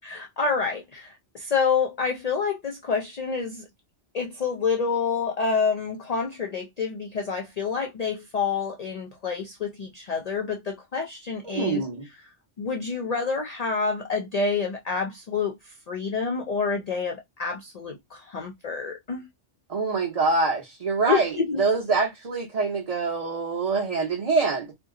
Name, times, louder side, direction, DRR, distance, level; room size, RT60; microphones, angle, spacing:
voice 1, 0.0-3.6 4.1-11.8 12.6-15.6 15.9-19.3 21.1-21.6, left 5 dB, 50° left, 0.4 m, -28 dB
voice 2, 11.4-12.1 19.7-24.7, right 4 dB, 35° right, 0.8 m, -25 dB
2.8 x 2.1 x 3.6 m
omnidirectional pair, 1.2 m